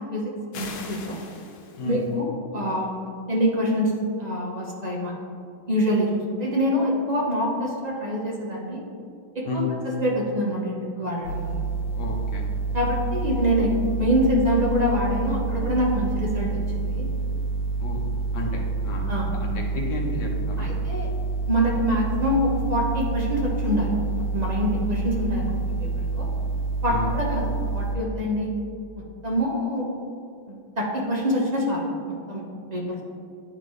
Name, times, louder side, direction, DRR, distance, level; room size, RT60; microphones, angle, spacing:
sound 1, 0.5-2.1, left 5 dB, 90° left, 1.6 m, -40 dB
voice 1, 0.5-1.2 1.8-2.3 2.5-3.9 4.2-5.1 5.7-8.8 9.3-11.6 12.7-13.7 14.0-16.5 16.8-17.1 19.1-19.3 20.6-21.1 21.5-26.3 26.8-28.5 29.2-29.9 30.5-31.8 32.3-32.4 32.7-33.0, equal, 40° right, -3 dB, 0.5 m, -25 dB
sound 2, 11.2-27.9, right 4 dB, 65° right, 2.2 m, -28 dB
voice 2, 12.0-12.5 17.8-18.0 18.3-19.0 19.3-19.5 19.7-20.3 20.6-20.7 26.9-27.1, left 4 dB, 65° left, 0 dB, 1.3 m, -31 dB
11.0 x 3.9 x 3.1 m, 2.4 s
omnidirectional pair, 2.1 m